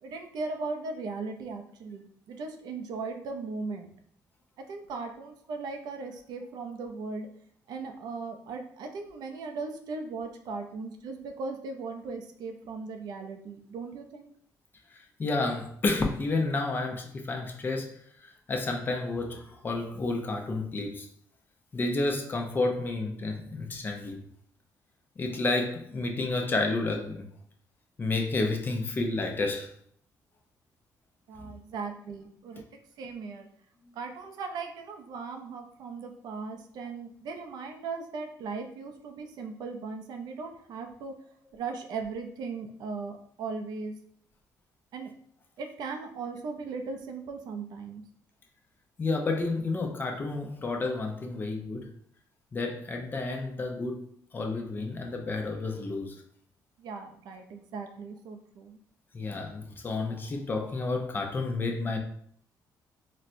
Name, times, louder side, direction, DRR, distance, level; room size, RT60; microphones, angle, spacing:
voice 1, 0.0-3.9 4.6-7.3 7.7-14.3 31.3-32.6 33.0-33.5 33.9-41.1 41.5-44.0 44.9-45.1 45.6-48.0 56.8-58.8, right 4 dB, 70° right, 5 dB, 0.5 m, -38 dB
voice 2, 14.9-21.1 21.7-24.2 25.2-27.2 28.0-29.7 31.4-31.5 49.0-51.9 52.5-54.0 54.3-56.2 59.1-62.0, left 3 dB, 30° left, 2 dB, 0.5 m, -30 dB
4.1 x 2.1 x 2.6 m, 0.63 s
cardioid pair, 120°, 7 cm